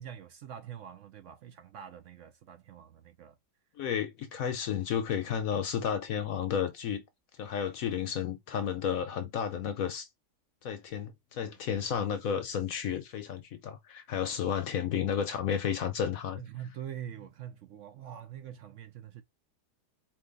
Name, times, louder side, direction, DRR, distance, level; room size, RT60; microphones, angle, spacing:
voice 1, 0.0-3.4 11.4-11.8 16.4-19.2, right 10 dB, 65° right, 0.8 m, -45 dB
voice 2, 3.8-7.0 7.4-10.1 10.6-16.4, left 8 dB, 65° left, 1.0 m, -32 dB
4.4 x 2.9 x 3.9 m
omnidirectional pair, 1.7 m